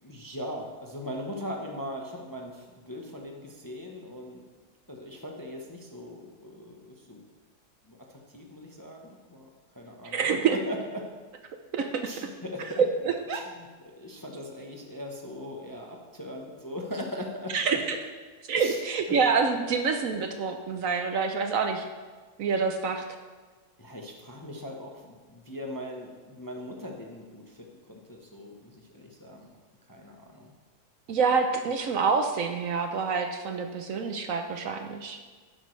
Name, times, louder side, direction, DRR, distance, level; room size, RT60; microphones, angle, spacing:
voice 1, 0.0-4.4 4.9-7.2 7.9-9.5 9.7-11.1 12.0-12.8 13.3-17.6 18.6-18.8 19.1-19.2 23.8-29.5 29.9-30.5, equal, 15° left, 1 dB, 0.7 m, -40 dB
voice 2, 10.0-10.6 11.7-12.1 12.8-13.4 17.5-18.0 18.5-21.8 22.4-23.0 31.1-35.2, right 5 dB, 65° right, 5 dB, 1.0 m, -27 dB
11.0 x 10.5 x 3.2 m, 1.4 s
omnidirectional pair, 1.7 m